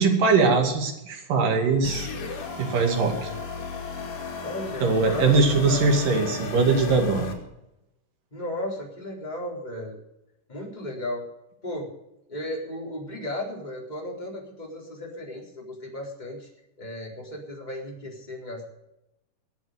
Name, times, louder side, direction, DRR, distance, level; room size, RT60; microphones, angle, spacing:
voice 1, 0.0-2.1 2.6-3.3 4.8-7.3, right 4 dB, 85° right, 3 dB, 4.1 m, -21 dB
sound 1, 1.8-7.3, left 4 dB, 85° left, 4.2 m, -34 dB
voice 2, 4.4-5.4 5.7-5.9 8.3-10.0 10.5-11.2 11.6-11.9 12.3-16.5 16.8-18.7, left 1 dB, 10° left, -1 dB, 4.0 m, -35 dB
21.5 x 8.3 x 6.5 m, 0.87 s
omnidirectional pair, 3.8 m